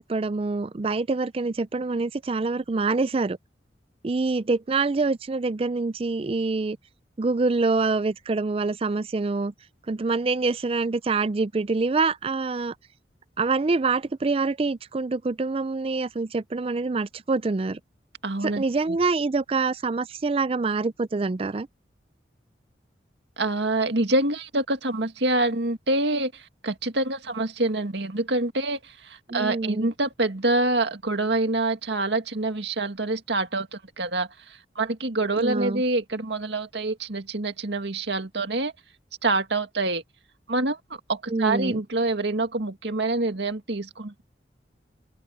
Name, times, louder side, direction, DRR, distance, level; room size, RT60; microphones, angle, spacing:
voice 1, 0.0-3.4 4.0-6.8 7.2-9.5 9.9-12.7 13.4-17.8 18.4-21.7 29.3-29.9 35.4-35.8 41.3-41.8, right 3 dB, 30° right, 0.4 m, -25 dB
voice 2, 18.2-19.0 23.4-38.7 39.2-40.0 40.5-40.8 41.1-44.2, right 2 dB, 75° right, 2.1 m, -26 dB
head